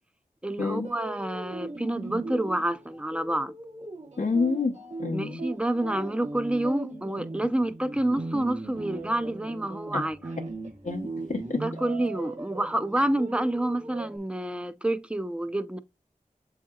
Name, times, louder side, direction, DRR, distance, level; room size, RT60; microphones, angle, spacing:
voice 1, 0.4-3.5 5.1-10.3 11.6-15.8, right 1 dB, 10° right, 0.5 m, -28 dB
sound 1, 0.8-14.2, right 2 dB, 55° right, 1.1 m, -38 dB
voice 2, 4.2-5.4 9.9-10.0 10.8-11.6, left 4 dB, 60° left, 0.7 m, -28 dB
7.6 x 2.8 x 2.3 m
wide cardioid pair, 50°, 14 cm